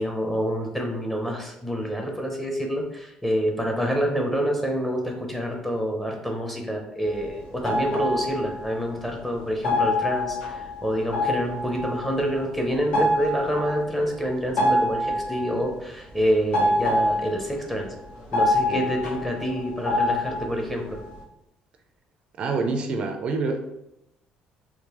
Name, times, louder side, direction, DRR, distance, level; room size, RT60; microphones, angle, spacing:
voice 1, 0.0-17.9 18.3-21.0, equal, 5° left, 1 dB, 0.7 m, -27 dB
sound 1, 7.1-7.3 7.5-9.1 9.4-9.5 9.6-15.7 16.1-21.2, left 1 dB, 70° left, 1.3 m, -26 dB
voice 2, 22.4-23.6, right 3 dB, 45° right, 4 dB, 0.4 m, -26 dB
3.7 x 3.1 x 2.9 m, 0.87 s
cardioid pair, 145°, 3 cm